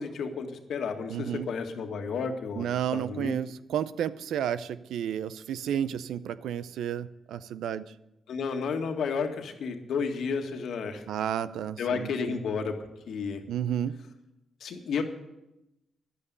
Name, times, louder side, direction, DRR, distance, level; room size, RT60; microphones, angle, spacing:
voice 1, 0.0-2.7 2.9-3.4 8.3-11.0 11.8-12.8 13.1-13.4 14.6-15.0, left 5 dB, 75° left, 5 dB, 1.7 m, -32 dB
voice 2, 1.1-1.5 2.6-7.9 11.1-12.4 13.5-14.0, right 9 dB, 90° right, 15 dB, 0.6 m, -32 dB
11.0 x 8.6 x 9.7 m, 0.91 s
cardioid pair, 75°, 0 cm